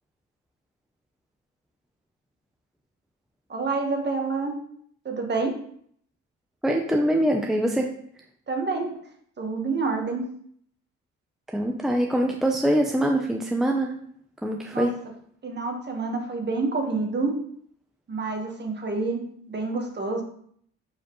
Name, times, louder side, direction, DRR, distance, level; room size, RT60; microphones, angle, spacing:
voice 1, 3.5-4.6 5.0-5.6 8.5-8.9 9.4-10.2 14.7-14.9 15.4-17.4 18.1-20.2, right 3 dB, 35° right, 3 dB, 1.4 m, -28 dB
voice 2, 6.6-7.9 11.5-13.9 14.4-15.0, right 1 dB, ahead, 2 dB, 0.6 m, -23 dB
6.9 x 4.9 x 3.1 m, 0.64 s
cardioid pair, 90°, 30 cm